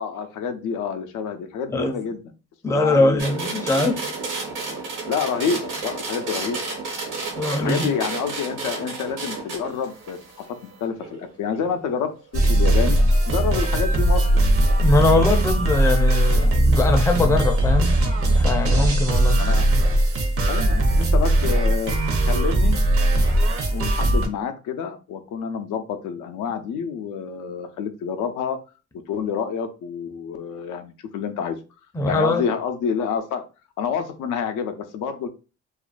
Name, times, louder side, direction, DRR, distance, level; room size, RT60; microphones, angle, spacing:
voice 1, 0.0-2.2 2.7-3.3 3.7-3.8 4.7-4.8 5.1-6.6 7.6-10.2 10.5-13.0 13.3-14.4 19.4-19.7 20.5-22.8 23.7-28.6 29.1-31.6 32.1-33.4 33.8-35.3, left 6 dB, 85° left, 0.5 m, -28 dB
voice 2, 2.6-4.0 7.4-7.9 14.8-17.9 18.4-19.4 31.9-32.4, left 2 dB, 10° left, 0.4 m, -21 dB
sound 1, 3.2-11.8 13.0-13.1, right 3 dB, 80° right, 1.1 m, -32 dB
sound 2, 12.3-24.3, right 1 dB, 50° right, 0.6 m, -19 dB
2.4 x 2.1 x 2.4 m
cardioid pair, 90°, 30 cm